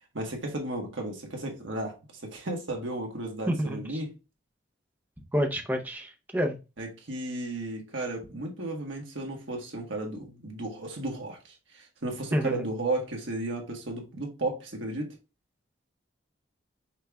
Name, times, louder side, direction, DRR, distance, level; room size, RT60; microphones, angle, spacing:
voice 1, 0.1-4.1 6.8-11.4 11.7-15.1, right 2 dB, 80° right, 1.4 m, -34 dB
voice 2, 3.5-3.8 5.3-6.6 12.3-12.6, equal, 10° right, 0.6 m, -28 dB
5.6 x 2.4 x 3.3 m
head